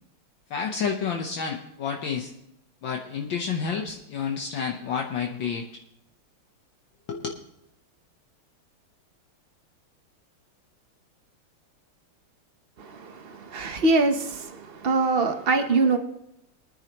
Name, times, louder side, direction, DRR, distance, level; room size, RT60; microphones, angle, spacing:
voice 1, 0.5-2.3 2.8-5.7 7.1-7.3, left 6 dB, 65° left, 1 dB, 1.6 m, -29 dB
voice 2, 12.8-16.0, right 3 dB, 50° right, 6 dB, 0.7 m, -24 dB
23.0 x 9.5 x 3.0 m, 0.85 s
omnidirectional pair, 2.3 m